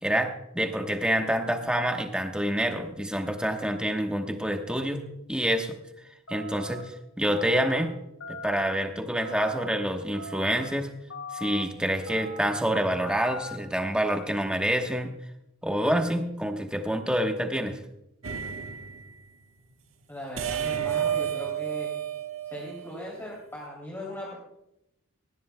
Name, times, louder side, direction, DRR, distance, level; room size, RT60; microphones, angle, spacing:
voice 1, 0.0-5.8 6.3-7.9 8.3-10.9 11.3-15.1 15.6-17.8, equal, 5° right, 4 dB, 1.1 m, -27 dB
sound 1, 6.3-6.8 7.2-7.8 8.2-8.7 9.2-9.7 10.1-10.7 11.1-11.6 12.1-12.6 13.0-13.6, left 2 dB, 80° left, 1.9 m, -40 dB
sound 2, 18.2-19.2 20.4-23.2, right 9 dB, 70° right, 1.4 m, -31 dB
voice 2, 20.1-21.9 22.4-24.4, left 1 dB, 10° left, -4 dB, 3.0 m, -39 dB
19.5 x 16.5 x 2.2 m, 0.85 s
head